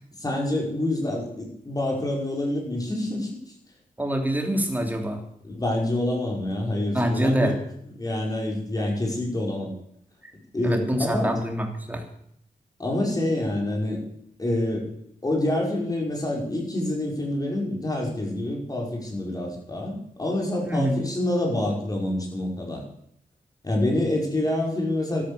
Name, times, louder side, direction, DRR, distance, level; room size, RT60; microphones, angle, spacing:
voice 1, 0.2-3.4 5.4-7.6 8.0-9.7 10.5-11.3 12.8-14.0 14.4-14.9 15.2-22.8 23.6-25.2, left 1 dB, 25° left, -1 dB, 5.5 m, -27 dB
voice 2, 4.0-5.2 6.9-7.5 10.6-12.0 20.6-21.0, equal, 10° right, 3 dB, 3.4 m, -25 dB
13.5 x 13.0 x 7.1 m, 0.70 s
wide cardioid pair, 125°, 15 cm